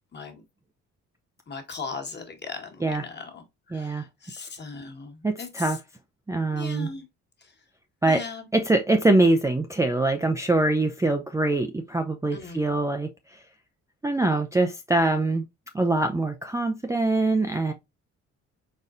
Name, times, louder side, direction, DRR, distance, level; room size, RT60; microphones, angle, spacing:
voice 1, 1.5-3.4 3.7-5.5 6.5-7.0 8.1-8.4 12.3-12.6, left 4 dB, 35° left, 1.4 m, -38 dB
voice 2, 3.7-4.1 5.2-5.8 6.3-6.9 8.0-8.2 8.5-13.4 14.0-15.4 15.7-17.7, right 2 dB, 10° right, 0.4 m, -23 dB
4.2 x 3.8 x 2.5 m
cardioid pair, 90°, 30 cm